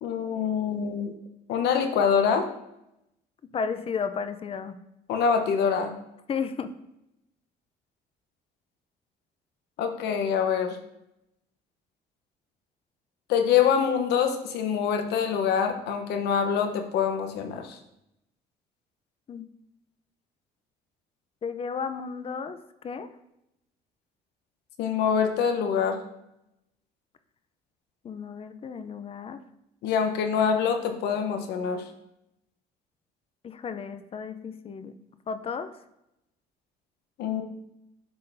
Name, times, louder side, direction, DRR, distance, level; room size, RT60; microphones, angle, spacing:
voice 1, 0.0-1.1 1.5-2.5 5.1-5.9 9.8-10.8 13.3-17.8 24.8-26.0 29.8-31.8 37.2-37.4, left 7 dB, 80° left, 6 dB, 0.8 m, -25 dB
voice 2, 3.5-4.7 6.3-6.7 19.3-19.5 21.4-23.1 28.0-29.4 33.4-34.9 35.3-35.7, left 6 dB, 35° left, 10 dB, 0.5 m, -33 dB
10.5 x 3.8 x 2.6 m, 0.84 s
cardioid pair, 110°, 17 cm